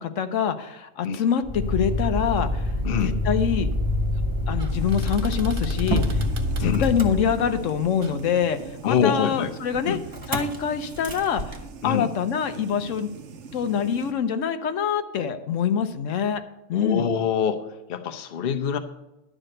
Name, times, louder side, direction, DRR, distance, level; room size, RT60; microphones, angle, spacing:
voice 1, 0.0-2.7 3.0-3.7 4.5-6.3 6.6-10.0 10.3-11.6 11.8-13.1 13.5-16.4 16.7-17.1, left 7 dB, 85° left, 9 dB, 1.1 m, -25 dB
Motor vehicle (road), 1.4-7.9 10.1-10.6 10.9-11.3, left 1 dB, 15° right, 1.3 m, -26 dB
sound 1, 2.2-11.7, right 2 dB, 45° right, 1.2 m, -45 dB
voice 2, 2.8-3.2 6.6-6.9 8.8-9.5 9.8-10.0 11.8-12.1 16.7-18.8, left 7 dB, 55° left, 7 dB, 0.9 m, -25 dB
sound 2, 4.7-14.1, right 5 dB, 70° right, 1.1 m, -42 dB
11.0 x 5.0 x 7.8 m, 0.93 s
omnidirectional pair, 1.3 m